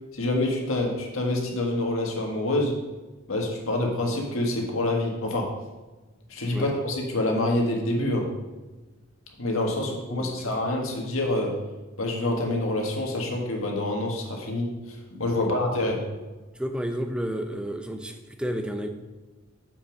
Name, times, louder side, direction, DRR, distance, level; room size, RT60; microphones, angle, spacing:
voice 1, 0.1-2.8 3.3-5.6 6.3-8.3 9.4-11.6 12.0-16.1, left 1 dB, 80° left, 1 dB, 1.7 m, -27 dB
voice 2, 9.8-10.3 15.3-15.5 16.6-18.9, equal, 5° right, 6 dB, 0.6 m, -31 dB
7.1 x 6.1 x 5.1 m, 1.2 s
head